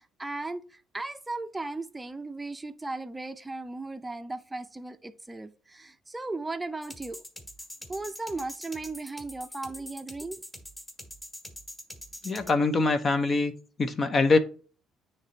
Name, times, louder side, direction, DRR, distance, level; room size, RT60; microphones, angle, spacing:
voice 1, 0.0-7.2 7.9-10.4, right 2 dB, 15° right, 0.6 m, -36 dB
sound 1, 6.8-12.5, left 1 dB, 15° left, 1.6 m, -44 dB
voice 2, 12.2-13.5 13.8-14.4, left 3 dB, 35° left, 0.8 m, -23 dB
9.1 x 3.3 x 4.0 m
cardioid pair, 95°, 0 cm